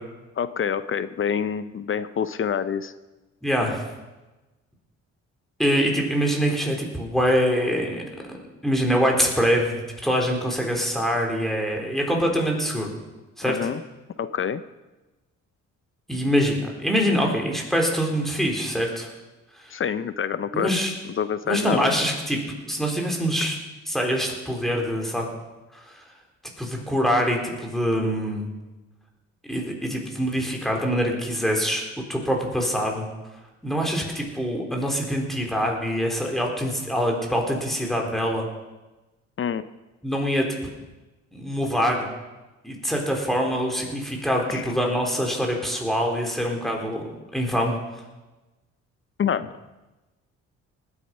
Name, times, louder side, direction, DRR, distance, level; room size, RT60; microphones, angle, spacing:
voice 1, 0.4-2.9 13.4-13.8 14.2-14.6 19.7-20.7 21.2-21.9 39.4-39.6 44.5-44.7 49.2-49.5, left 7 dB, 45° left, 14 dB, 0.6 m, -26 dB
voice 2, 3.4-3.8 5.6-8.0 8.6-12.9 13.4-13.6 16.1-19.1 20.5-20.9 21.5-22.4 22.7-23.6 23.9-25.2 25.7-26.0 26.6-28.5 29.5-31.8 32.1-33.1 33.6-38.5 40.0-40.5 41.3-42.1 42.6-47.1 47.3-47.7, equal, ahead, 0 dB, 3.8 m, -24 dB
20.0 x 8.5 x 5.5 m, 1.1 s
cardioid pair, 90°, 30 cm